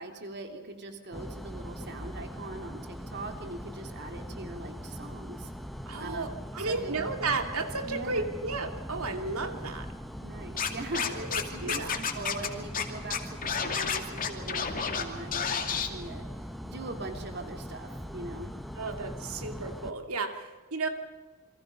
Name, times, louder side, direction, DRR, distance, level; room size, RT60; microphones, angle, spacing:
voice 1, 0.0-5.5 6.0-7.1 7.8-8.3 10.2-18.5, right 2 dB, 50° right, 4 dB, 3.4 m, -41 dB
sound 1, 1.1-19.9, equal, ahead, 1.1 m, -41 dB
voice 2, 5.9-9.9 11.3-12.0 18.8-20.9, right 3 dB, 75° right, 6 dB, 2.7 m, -33 dB
Scratching (performance technique), 10.6-11.4 11.7-12.5 12.7-12.8 13.1-15.0 15.3-15.9, left 7 dB, 40° left, 2.5 m, -30 dB
28.5 x 24.0 x 5.6 m, 1.3 s
head